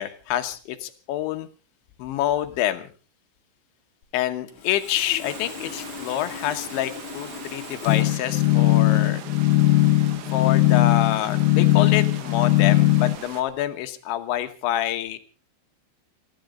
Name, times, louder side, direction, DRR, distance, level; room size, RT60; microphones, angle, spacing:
voice 1, 0.0-1.5 2.0-2.8 4.1-9.2 10.3-15.2, left 12 dB, 75° left, 9 dB, 3.2 m, -27 dB
Sawing, 4.0-4.1 4.5-8.0, left 9 dB, 45° left, 2.8 m, -39 dB
sound 1, 5.2-13.4, right 9 dB, 85° right, 4.3 m, -41 dB
sound 2, 7.9-13.2, left 16 dB, 90° left, 2.1 m, -19 dB
29.0 x 11.5 x 3.8 m, 0.36 s
omnidirectional pair, 5.8 m